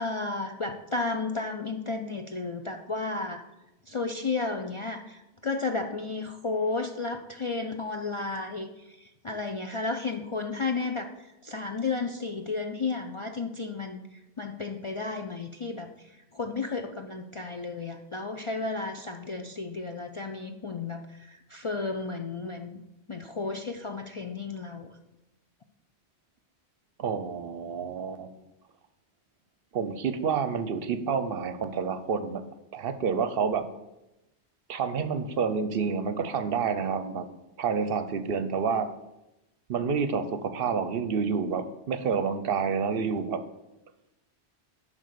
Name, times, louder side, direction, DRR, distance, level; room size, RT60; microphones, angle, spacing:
voice 1, 0.0-3.4 3.9-14.0 14.4-22.8 23.1-24.9, left 3 dB, 45° left, 4 dB, 0.4 m, -33 dB
voice 2, 27.0-28.3 29.7-32.4 32.7-33.7 34.7-37.3 37.6-38.9 39.7-43.4, right 6 dB, 60° right, 10 dB, 0.8 m, -28 dB
10.0 x 3.6 x 6.7 m, 0.96 s
omnidirectional pair, 1.1 m